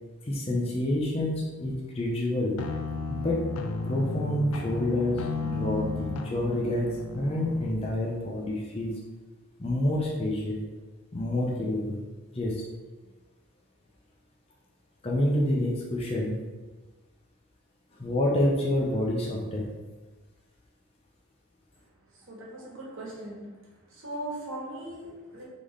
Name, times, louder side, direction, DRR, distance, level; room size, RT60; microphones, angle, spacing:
voice 1, 0.3-2.6 3.1-3.5 3.8-9.0 9.6-10.6 11.1-12.0 12.3-12.6 15.0-16.4 18.0-19.7, left 1 dB, 25° left, -3 dB, 0.6 m, -28 dB
sound 1, 2.6-7.7, left 3 dB, 85° left, 0.4 m, -33 dB
voice 2, 22.3-23.5 23.9-25.4, right 1 dB, 60° right, -5 dB, 1.3 m, -39 dB
3.9 x 3.6 x 3.2 m, 1.2 s
head